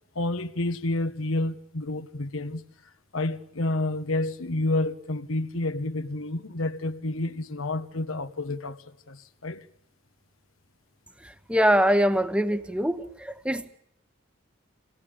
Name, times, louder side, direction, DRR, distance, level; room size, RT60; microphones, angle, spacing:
voice 1, 0.1-2.6 3.1-9.6, left 2 dB, 90° left, 1.4 m, -29 dB
voice 2, 11.5-13.7, equal, 5° right, 1.0 m, -23 dB
26.5 x 18.5 x 8.8 m
head